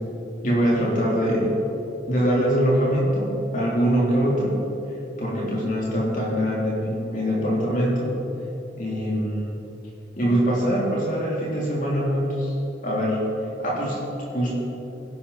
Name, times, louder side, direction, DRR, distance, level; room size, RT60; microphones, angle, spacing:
voice 1, 0.4-1.6 2.1-4.6 5.2-8.1 8.8-9.5 10.2-12.5 12.8-13.2 13.6-14.6, equal, 45° left, -5 dB, 3.5 m, -23 dB
16.0 x 11.5 x 4.2 m, 3.0 s
head